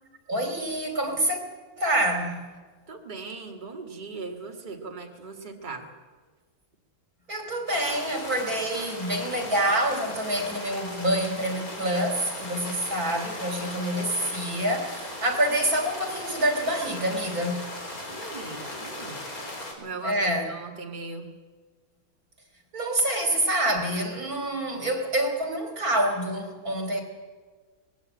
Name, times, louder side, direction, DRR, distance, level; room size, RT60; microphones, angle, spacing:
voice 1, 0.3-1.4 1.8-2.5 7.3-17.6 20.0-20.5 22.7-27.0, right 1 dB, 90° right, 4 dB, 3.6 m, -27 dB
voice 2, 2.9-5.9 18.1-19.3 19.8-21.3, right 3 dB, 30° right, 2 dB, 2.1 m, -38 dB
sound 1, 7.7-19.7, left 1 dB, 80° left, 4.0 m, -38 dB
20.5 x 15.5 x 8.8 m, 1.4 s
omnidirectional pair, 1.5 m